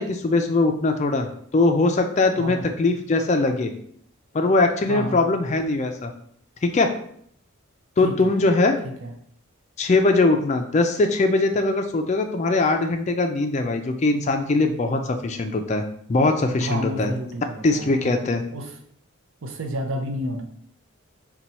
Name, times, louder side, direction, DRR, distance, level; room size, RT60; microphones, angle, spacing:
voice 1, 0.0-3.7 4.3-6.1 6.6-6.9 8.0-8.8 9.8-17.1 17.6-18.4, left 2 dB, 30° left, 5 dB, 0.3 m, -21 dB
voice 2, 2.4-2.7 4.9-5.3 8.0-8.4 9.0-9.1 16.6-18.2 18.5-18.7 19.4-20.4, equal, 70° right, 3 dB, 0.6 m, -30 dB
4.0 x 2.2 x 4.2 m, 0.65 s
head